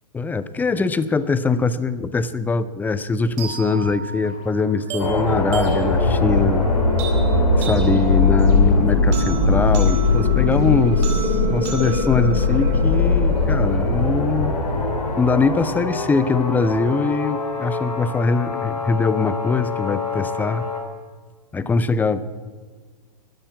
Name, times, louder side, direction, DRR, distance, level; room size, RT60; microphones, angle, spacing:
voice 1, 0.1-6.7 7.6-14.6 15.2-20.7 21.5-22.2, left 4 dB, 10° left, 15 dB, 0.5 m, -22 dB
sound 1, 3.4-13.4, right 5 dB, 40° right, 3.9 m, -35 dB
sound 2, 5.0-20.8, left 3 dB, 70° left, 3.4 m, -20 dB
13.5 x 10.0 x 8.1 m, 1.5 s
hypercardioid pair, 115°, 21 cm